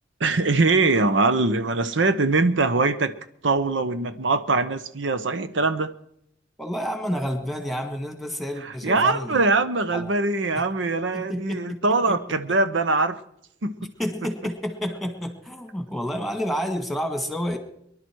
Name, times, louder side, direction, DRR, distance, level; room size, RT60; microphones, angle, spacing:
voice 1, 0.2-3.1 3.4-5.9 8.6-13.2 13.6-13.7, right 3 dB, 70° right, 11 dB, 0.9 m, -22 dB
voice 2, 6.6-9.4 9.9-10.1 10.5-10.7 11.1-12.2 13.8-17.6, equal, ahead, 6 dB, 1.9 m, -30 dB
23.5 x 11.5 x 4.6 m, 0.75 s
head